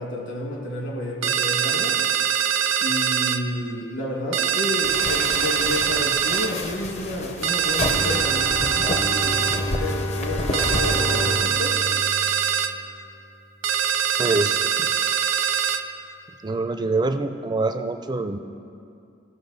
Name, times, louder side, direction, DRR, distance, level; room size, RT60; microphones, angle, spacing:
voice 1, 0.0-2.0 2.8-11.8, left 1 dB, 65° left, -1 dB, 1.7 m, -30 dB
sound 1, 1.2-3.4 4.3-6.5 7.4-9.6 10.5-12.7 13.6-15.8, right 8 dB, 85° right, 0.5 m, -23 dB
sound 2, 4.8-11.6, left 2 dB, 35° left, 0.6 m, -31 dB
Bowed string instrument, 7.8-13.1, left 1 dB, 85° left, 1.0 m, -31 dB
voice 2, 14.2-14.6 16.4-18.4, right 3 dB, 20° right, 8 dB, 0.4 m, -24 dB
16.0 x 5.4 x 4.0 m, 2.5 s
head